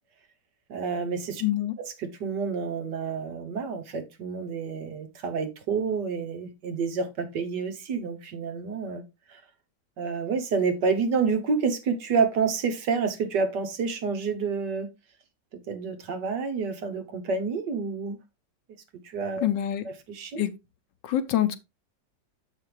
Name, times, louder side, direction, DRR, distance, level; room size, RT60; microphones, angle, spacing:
voice 1, 0.7-1.4 1.8-9.0 9.3-9.4 10.0-14.9 15.7-18.2 19.0-19.5 19.8-20.4, right 5 dB, 70° right, 1.8 m, -29 dB
voice 2, 1.4-1.8 19.4-19.8 20.4-20.5 21.0-21.6, left 12 dB, 85° left, 1.5 m, -25 dB
7.6 x 5.9 x 3.3 m
omnidirectional pair, 1.9 m